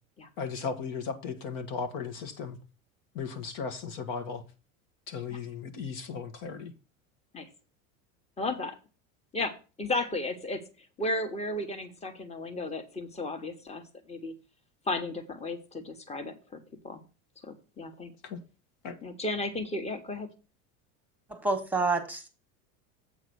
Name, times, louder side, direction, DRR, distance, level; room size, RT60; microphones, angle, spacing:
voice 1, 0.4-2.6 3.1-4.4 5.1-6.7 18.2-18.4 18.8-19.0, left 5 dB, 60° left, 1.5 m, -36 dB
voice 2, 8.4-8.8 9.3-14.3 14.8-17.0 17.4-18.1 19.0-20.3, left 2 dB, 15° left, 1.3 m, -34 dB
voice 3, 21.3-22.3, right 3 dB, 5° right, 1.5 m, -28 dB
8.1 x 3.9 x 6.3 m
supercardioid pair, 100°, 40 cm